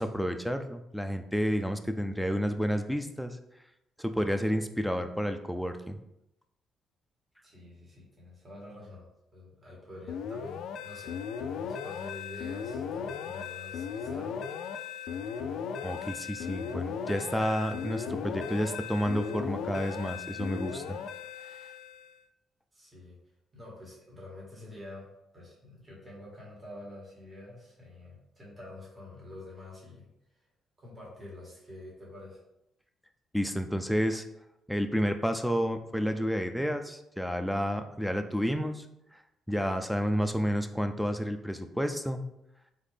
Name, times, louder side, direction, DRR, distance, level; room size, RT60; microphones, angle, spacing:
voice 1, 0.0-3.4 4.0-6.0 15.8-21.0 33.3-34.3 34.7-38.9 39.1-39.2 39.5-42.2, equal, ahead, 6 dB, 0.4 m, -30 dB
voice 2, 7.4-9.0 9.3-11.2 11.5-14.5 21.7-21.8 22.7-23.2 23.5-30.1 30.3-30.4 30.8-32.4, left 2 dB, 30° right, -4 dB, 1.7 m, -47 dB
sound 1, 10.1-22.2, left 7 dB, 80° left, 0.3 m, -37 dB
4.0 x 3.6 x 3.3 m, 0.83 s
cardioid pair, 90°, 0 cm